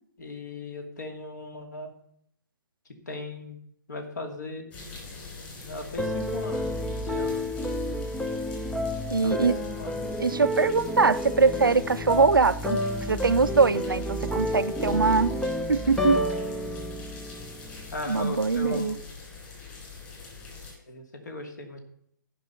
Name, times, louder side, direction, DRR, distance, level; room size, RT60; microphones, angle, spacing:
voice 1, 0.2-1.9 3.1-3.6 3.9-4.7 5.6-7.5 9.2-9.5 9.8-10.0 17.9-19.0 20.9-21.8, left 2 dB, 55° left, 2.5 m, -37 dB
sound 1, 4.7-20.7, left 4 dB, 20° left, 3.3 m, -44 dB
sound 2, 6.0-18.1, left 1 dB, 5° left, 0.5 m, -30 dB
voice 2, 9.1-9.6 10.2-12.8 13.1-15.4 15.7-16.2 18.1-19.0, right 4 dB, 80° right, 0.5 m, -22 dB
14.0 x 5.5 x 5.6 m
figure-of-eight pair, 135°, 11 cm